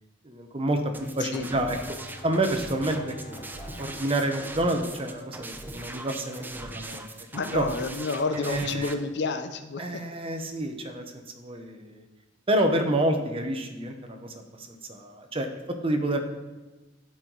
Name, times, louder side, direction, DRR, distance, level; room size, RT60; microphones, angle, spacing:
voice 1, 0.2-1.8 2.2-3.4 3.8-7.1 7.5-7.7 8.5-9.0 9.8-11.0 11.4-12.0 12.5-15.5 15.8-16.2, right 1 dB, 30° right, 5 dB, 0.8 m, -28 dB
sound 1, 0.9-8.9, right 2 dB, 10° right, 0.4 m, -40 dB
Bowed string instrument, 1.4-5.8, left 1 dB, 45° left, 1.5 m, -48 dB
voice 2, 7.3-10.0, left 4 dB, 65° left, 9 dB, 0.6 m, -30 dB
11.5 x 4.6 x 3.9 m, 1.1 s
head